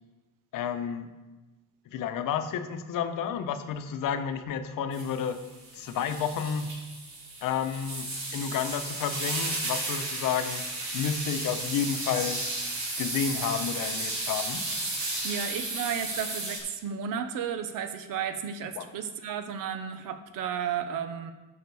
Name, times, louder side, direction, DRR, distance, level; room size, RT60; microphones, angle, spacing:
voice 1, 0.5-1.1 1.9-5.4 5.7-6.7 7.4-8.1 8.3-10.7 10.9-12.4 13.0-14.6 18.8-18.9, left 7 dB, 80° left, 9 dB, 0.9 m, -31 dB
sound 1, 4.9-16.6, right 2 dB, 65° right, 3.5 m, -34 dB
voice 2, 15.2-21.3, right 8 dB, 80° right, 9 dB, 0.9 m, -33 dB
12.0 x 5.1 x 4.7 m, 1.1 s
cardioid pair, 160°, 32 cm